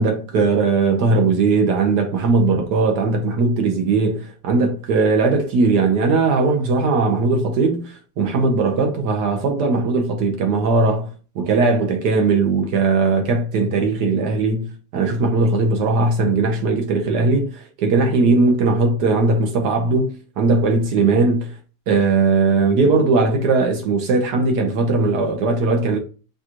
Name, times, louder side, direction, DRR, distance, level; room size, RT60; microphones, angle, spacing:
voice 1, 0.0-11.1 11.3-21.5 21.9-26.0, right 3 dB, 85° right, 1.5 m, -19 dB
6.2 x 2.5 x 2.9 m
omnidirectional pair, 1.7 m